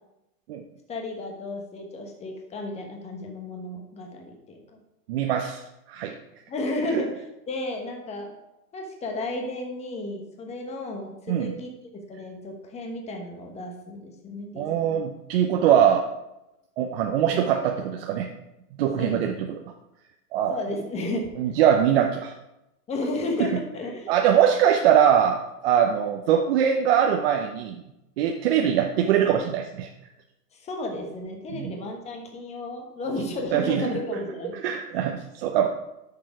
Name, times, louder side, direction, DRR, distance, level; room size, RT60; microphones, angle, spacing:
voice 1, 0.9-4.8 6.5-7.1 7.5-8.3 8.7-11.7 12.1-15.0 19.0-19.2 20.5-21.3 22.9-24.1 30.5-34.6, left 2 dB, 15° left, 2 dB, 1.2 m, -33 dB
voice 2, 5.1-5.6 5.9-6.2 6.9-7.0 11.3-11.5 14.6-16.0 16.8-18.3 18.8-19.5 20.3-20.6 21.4-22.3 23.4-23.5 24.1-27.8 28.2-29.9 31.5-31.7 33.5-33.9 34.6-35.7, right 9 dB, 40° right, 3 dB, 0.7 m, -22 dB
8.8 x 6.7 x 4.8 m, 0.91 s
hypercardioid pair, 145°, 48 cm